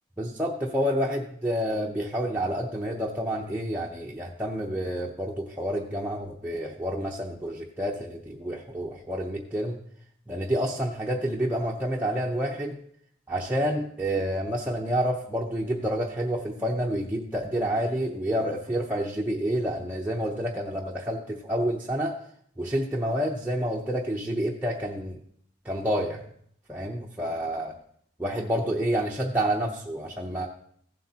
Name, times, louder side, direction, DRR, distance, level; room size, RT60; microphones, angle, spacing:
voice 1, 0.2-9.8 10.3-12.8 13.3-22.1 22.6-25.2 25.6-26.2 26.7-27.8 28.2-30.5, equal, 10° right, -3 dB, 0.7 m, -29 dB
15.0 x 7.7 x 2.9 m, 0.65 s
head